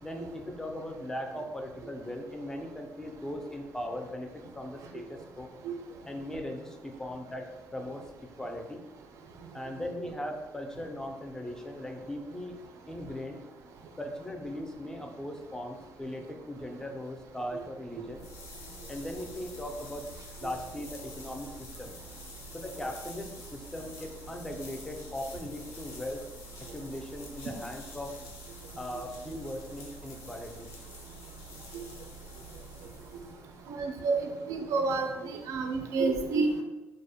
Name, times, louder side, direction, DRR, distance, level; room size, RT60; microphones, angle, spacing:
voice 1, 0.0-4.3 4.6-5.5 6.1-8.0 8.4-8.8 9.5-12.6 12.9-13.4 14.0-18.2 18.9-20.1 20.4-21.9 22.6-26.2 26.6-28.1 28.8-30.7, left 1 dB, 10° left, 3 dB, 0.3 m, -39 dB
sound 1, 18.0-33.7, equal, 75° left, 0.5 m, -47 dB
voice 2, 33.7-36.6, right 4 dB, 75° right, 4 dB, 0.4 m, -29 dB
2.4 x 2.0 x 2.7 m, 1.1 s
cardioid pair, 100°, 5 cm